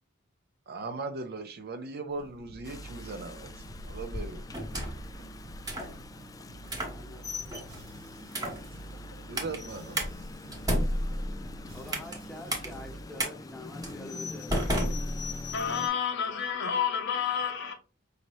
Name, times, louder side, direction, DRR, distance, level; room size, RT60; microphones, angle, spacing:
voice 1, 0.7-4.4 9.3-10.0, right 3 dB, 50° right, 0.5 m, -38 dB
sound 1, 2.1-13.0, right 2 dB, 75° right, 1.0 m, -48 dB
Rain, 2.6-15.9, left 3 dB, 20° left, 0.3 m, -42 dB
sound 2, 4.5-5.1 5.7-5.9 6.6-7.0 7.5-7.8 8.3-8.7 9.4-9.6 10.0-10.1 10.5-12.2 12.5-12.7 13.2-13.3 13.8-14.0 14.5-15.6, equal, 20° right, 1.1 m, -31 dB
voice 2, 6.8-7.9 11.7-14.7, left 1 dB, ahead, 0.8 m, -46 dB
voice 3, 15.5-17.7, left 7 dB, 60° left, 0.7 m, -29 dB
5.2 x 2.8 x 3.1 m
head